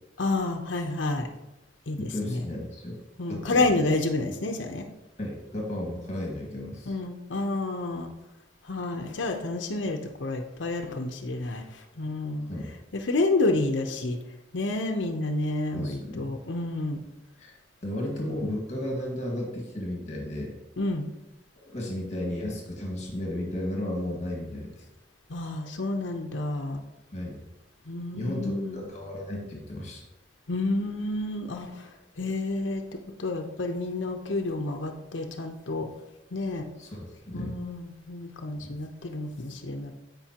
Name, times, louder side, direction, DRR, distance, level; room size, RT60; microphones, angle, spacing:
voice 1, 0.2-1.3 1.9-2.4 3.2-4.9 6.9-8.1 8.7-11.6 12.0-12.5 12.9-14.2 14.5-17.0 20.8-21.1 25.3-26.8 27.9-28.8 30.5-31.8 32.2-32.8 33.2-35.9 36.3-36.7 37.3-39.9, left 2 dB, 80° left, 3 dB, 0.8 m, -29 dB
voice 2, 2.0-3.0 3.3-3.7 5.2-7.0 12.5-12.7 15.7-16.3 17.4-20.6 21.7-24.9 27.1-27.4 28.1-30.0 36.8-37.6 38.6-38.7, left 1 dB, 40° left, -1 dB, 1.8 m, -34 dB
15.5 x 5.4 x 2.9 m, 1.0 s
head